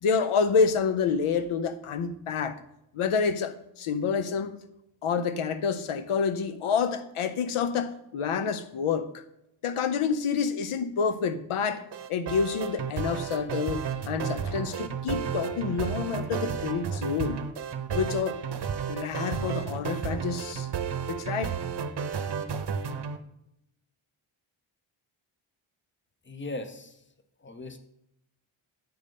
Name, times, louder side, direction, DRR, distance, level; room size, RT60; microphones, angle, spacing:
voice 1, 0.0-2.6 2.9-4.6 5.0-9.2 9.6-11.8 12.1-17.4 17.9-18.4 18.9-20.7 21.1-21.5, left 6 dB, 80° left, 12 dB, 0.7 m, -28 dB
sound 1, 11.9-23.2, right 7 dB, 55° right, 0.8 m, -32 dB
voice 2, 26.2-27.0 27.4-27.8, left 2 dB, 25° left, 9 dB, 0.9 m, -38 dB
7.8 x 5.4 x 5.2 m, 0.83 s
wide cardioid pair, 80°, 49 cm